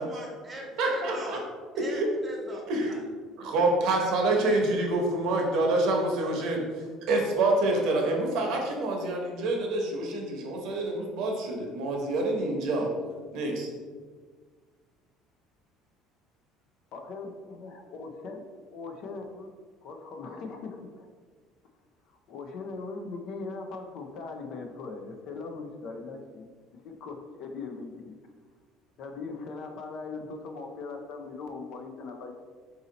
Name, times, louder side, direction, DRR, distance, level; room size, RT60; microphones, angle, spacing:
voice 1, 0.0-1.4 1.7-2.6 2.9-3.0, right 1 dB, 15° right, -2 dB, 0.8 m, -40 dB
voice 2, 0.8-1.4 1.8-2.1 2.7-2.9 3.4-6.6 7.1-12.9 13.3-13.7, right 2 dB, 55° right, 1 dB, 0.8 m, -27 dB
voice 3, 16.9-18.4 18.7-19.5 19.8-21.1 22.1-26.5 26.8-28.2 29.0-32.3, left 4 dB, 50° left, 4 dB, 0.5 m, -40 dB
4.0 x 2.8 x 3.8 m, 1.5 s
cardioid pair, 170°, 0 cm